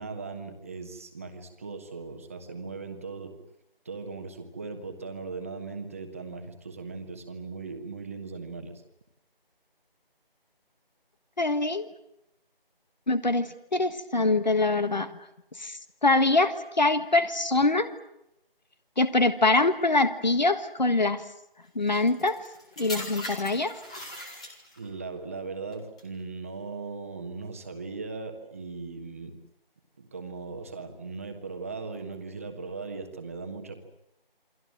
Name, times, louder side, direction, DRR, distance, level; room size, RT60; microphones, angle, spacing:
voice 1, 0.0-3.3 3.8-8.8 24.8-29.3 30.0-33.7, right 4 dB, 15° right, 5 dB, 1.5 m, -38 dB
voice 2, 11.4-11.9 13.1-15.1 15.6-17.9 19.0-21.2 21.7-22.4 22.8-23.8, left 2 dB, 50° left, 11 dB, 1.6 m, -24 dB
sound 1, 21.9-24.9 25.7-26.0, equal, 5° left, 1.3 m, -40 dB
28.5 x 23.5 x 7.7 m, 0.82 s
figure-of-eight pair, 165°, 29 cm